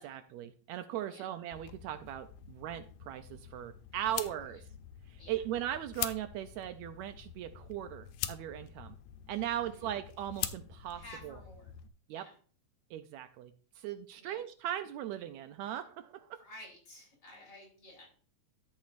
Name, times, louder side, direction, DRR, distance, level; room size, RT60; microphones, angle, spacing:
voice 1, 0.0-4.6 5.1-9.0 9.3-11.4 12.1-12.3 12.9-16.4, right 11 dB, 80° right, 10 dB, 1.8 m, -39 dB
sound 1, 1.5-11.9, left 11 dB, 85° left, 2.1 m, -44 dB
voice 2, 3.9-4.3 5.2-5.4 9.5-9.9 10.9-11.7 12.1-12.3 14.1-14.4 16.4-18.1, left 1 dB, 40° left, -2 dB, 4.0 m, -53 dB
12.5 x 7.2 x 2.5 m, 0.41 s
omnidirectional pair, 3.3 m